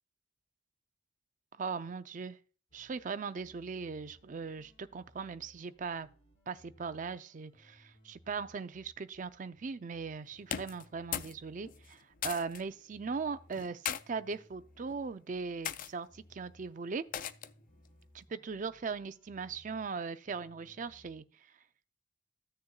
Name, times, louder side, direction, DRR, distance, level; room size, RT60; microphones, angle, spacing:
voice 1, 1.6-2.4 2.7-6.1 6.5-12.0 12.2-17.0 18.1-21.2, right 5 dB, 45° right, 0.4 m, -39 dB
sound 1, 2.7-13.5 13.9-16.7 17.1-21.2, equal, 30° left, 3.4 m, -63 dB
sound 2, 10.4-11.4 11.7-12.6 13.5-14.0 14.8-15.1 15.6-15.9 17.1-17.6, left 9 dB, 45° left, 0.4 m, -38 dB
14.5 x 6.7 x 2.3 m
head